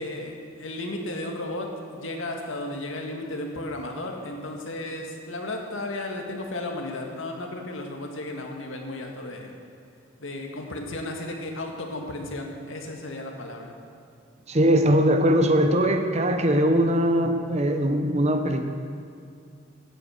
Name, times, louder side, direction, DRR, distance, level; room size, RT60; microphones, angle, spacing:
voice 1, 0.0-9.6 10.2-13.8 14.5-14.6, left 1 dB, 85° left, 2 dB, 2.0 m, -34 dB
voice 2, 14.5-18.6, equal, 35° right, 7 dB, 0.9 m, -21 dB
16.5 x 9.0 x 6.6 m, 2.4 s
head